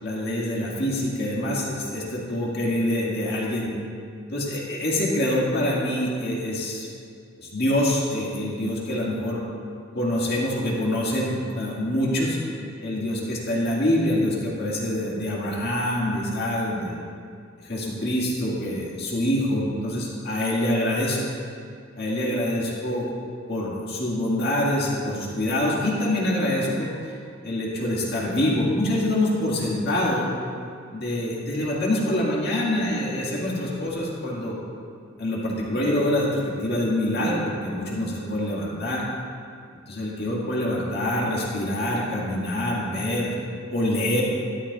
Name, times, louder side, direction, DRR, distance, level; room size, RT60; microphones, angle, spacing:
voice 1, 0.0-3.7 4.3-6.9 7.4-9.4 9.9-12.4 12.8-16.9 17.6-21.2 22.0-23.1 23.5-27.1 27.4-30.3 30.9-34.6 35.2-39.1 39.9-43.3 43.7-44.2, left 1 dB, 55° left, -5 dB, 2.0 m, -25 dB
12.5 x 11.0 x 2.4 m, 2.3 s
head